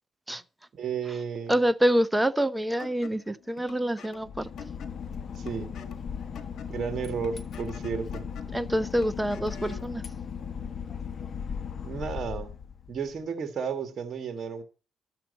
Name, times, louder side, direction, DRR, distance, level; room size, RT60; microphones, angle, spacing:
voice 1, 0.7-1.6 5.4-5.7 6.7-8.2 11.8-12.5 12.9-14.6, right 6 dB, 50° right, 1.9 m, -33 dB
voice 2, 1.5-4.5 8.5-10.0, equal, 10° right, 0.7 m, -26 dB
sound 1, 2.8-9.9, left 5 dB, 65° left, 1.8 m, -49 dB
Boat Water vehicle / Engine, 4.2-13.1, left 7 dB, 50° left, 1.3 m, -37 dB
12.0 x 7.5 x 5.5 m
cardioid pair, 90°, 0 cm